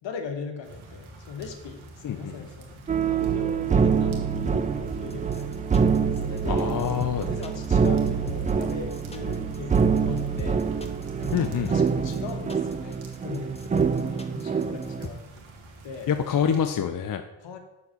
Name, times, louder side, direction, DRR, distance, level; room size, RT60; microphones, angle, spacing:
voice 1, 0.0-5.7 6.1-10.6 11.2-15.3 15.8-16.1 17.4-17.6, left 5 dB, 65° left, 6 dB, 1.4 m, -39 dB
sound 1, 0.6-16.8, right 1 dB, 75° right, 1.6 m, -47 dB
sound 2, 2.9-15.1, right 6 dB, 20° right, 0.3 m, -25 dB
sound 3, 4.9-15.1, left 2 dB, 15° left, 0.9 m, -39 dB
voice 2, 6.5-7.3 11.3-11.9 16.1-17.2, left 8 dB, 45° left, 7 dB, 0.6 m, -26 dB
7.0 x 4.2 x 6.5 m, 0.93 s
cardioid pair, 70°, 48 cm